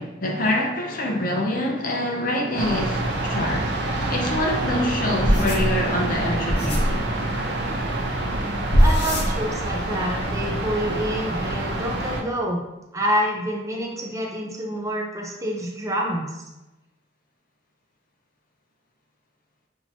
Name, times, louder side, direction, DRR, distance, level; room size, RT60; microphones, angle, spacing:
voice 1, 0.0-3.7 4.1-7.0, left 1 dB, 45° left, 1 dB, 0.7 m, -25 dB
sound 1, 2.6-12.2, right 2 dB, 65° right, 0.6 m, -27 dB
sound 2, 5.2-7.0 8.3-8.4 8.7-9.8 10.0-10.6, equal, 65° left, 1.0 m, -21 dB
voice 2, 8.8-12.6 12.9-16.4, equal, 15° right, -1 dB, 0.6 m, -27 dB
5.9 x 2.9 x 2.8 m, 0.96 s
head